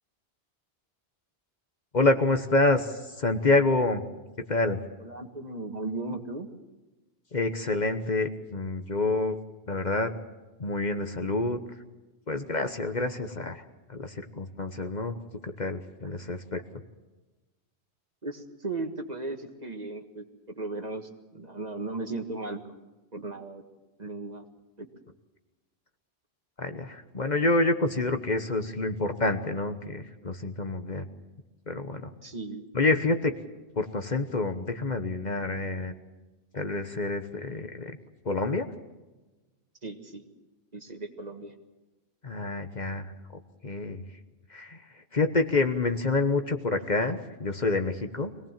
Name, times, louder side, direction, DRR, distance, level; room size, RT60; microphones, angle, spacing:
voice 1, 1.9-2.9 3.2-4.0 4.5-4.8 7.3-9.4 9.7-10.1 10.6-11.6 12.3-13.6 13.9-15.1 15.4-16.6 26.6-31.1 31.7-32.1 32.7-33.3 33.8-35.9 36.5-37.9 38.2-38.7 42.2-43.1 43.6-44.0 44.5-44.8 45.1-48.3, left 2 dB, 45° left, 7 dB, 1.3 m, -27 dB
voice 2, 5.0-6.5 18.2-22.6 23.1-23.6 24.0-24.4 24.8-24.9 32.2-32.6 39.8-40.3 40.7-41.5, right 3 dB, 40° right, 5 dB, 1.8 m, -36 dB
23.5 x 18.0 x 7.4 m, 1.1 s
omnidirectional pair, 1.1 m